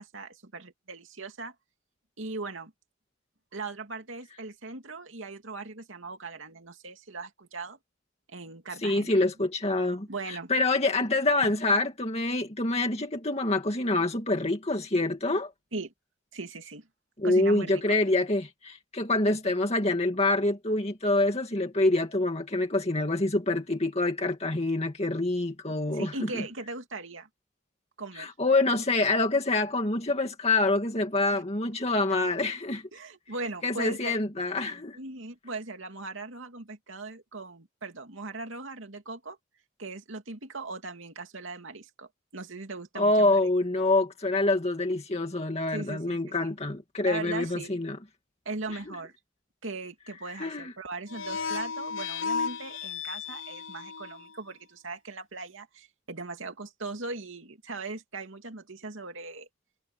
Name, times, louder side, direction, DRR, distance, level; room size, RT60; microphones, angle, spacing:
voice 1, 0.0-1.5 2.2-2.7 3.5-7.8 8.3-9.1 10.1-10.5 11.4-11.5 15.7-15.9 16.3-16.9 17.2-17.9 25.7-27.3 28.0-28.3 31.3-31.4 32.9-34.1 34.9-39.4 39.8-43.5 45.7-46.4 47.1-47.8 48.4-49.1 49.6-59.5, right 3 dB, 75° right, 2.6 m, -39 dB
voice 2, 8.8-15.5 17.2-26.4 28.2-32.8 33.6-35.0 43.0-48.0 50.4-50.7, left 2 dB, 30° left, 2.2 m, -26 dB
sound 1, 51.1-54.3, left 5 dB, 75° left, 0.8 m, -34 dB
head